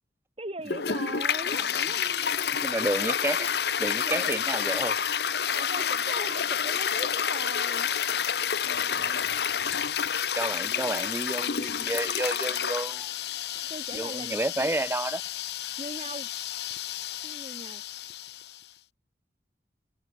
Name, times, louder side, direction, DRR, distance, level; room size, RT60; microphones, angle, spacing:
voice 1, 0.4-3.3 4.0-4.4 5.4-7.9 8.6-9.2 10.5-10.9 13.5-14.7 15.8-16.3 17.2-17.8, right 2 dB, 35° right, 5.8 m, -40 dB
Toilet flush, 0.6-18.6, left 8 dB, 65° left, 0.9 m, -29 dB
voice 2, 2.6-3.5 3.8-5.0 10.3-13.1 13.9-15.2, right 2 dB, 15° right, 0.4 m, -30 dB
head